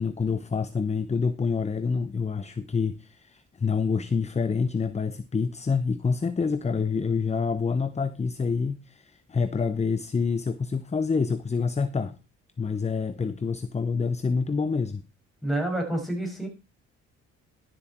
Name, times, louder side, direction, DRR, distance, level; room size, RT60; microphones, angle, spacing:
voice 1, 0.0-12.2 12.6-15.0, left 5 dB, 20° left, 13 dB, 0.8 m, -27 dB
voice 2, 15.4-16.5, right 1 dB, ahead, 2 dB, 5.9 m, -28 dB
12.0 x 7.7 x 4.4 m, 0.28 s
cardioid pair, 90°, 30 cm